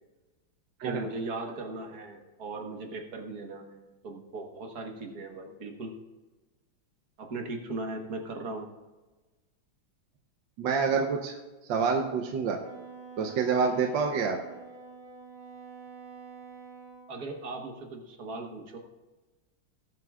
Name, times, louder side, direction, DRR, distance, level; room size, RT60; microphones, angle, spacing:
voice 1, 0.8-5.9 7.2-8.7 17.1-18.8, right 2 dB, 50° right, 3 dB, 1.6 m, -38 dB
voice 2, 10.6-11.4 11.6-12.6 13.2-14.4, right 5 dB, 70° right, 2 dB, 1.4 m, -27 dB
Wind instrument woodwind instrument, 12.6-17.1, right 4 dB, 30° right, 0.9 m, -47 dB
19.5 x 7.8 x 2.4 m, 1.2 s
omnidirectional pair, 2.3 m